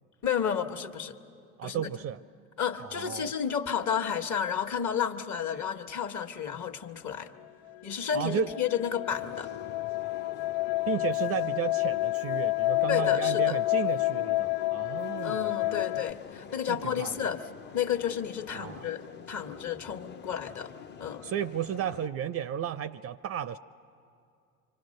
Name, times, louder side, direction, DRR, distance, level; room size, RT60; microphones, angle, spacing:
voice 1, 0.2-1.2 1.6-1.9 2.6-7.3 7.8-9.5 12.9-13.6 15.2-17.4 17.7-20.7 21.0-21.2, left 8 dB, 40° left, 6 dB, 1.3 m, -31 dB
voice 2, 1.6-2.2 2.8-3.3 8.1-8.5 10.9-15.8 16.7-17.2 18.5-18.9 21.2-23.6, right 9 dB, 35° right, 15 dB, 0.5 m, -33 dB
sound 1, 7.8-16.1, left 18 dB, 80° left, 0.7 m, -29 dB
sound 2, 9.1-22.1, left 7 dB, 25° left, 0.6 m, -47 dB
26.0 x 25.0 x 6.5 m, 2.4 s
hypercardioid pair, 80°, 44 cm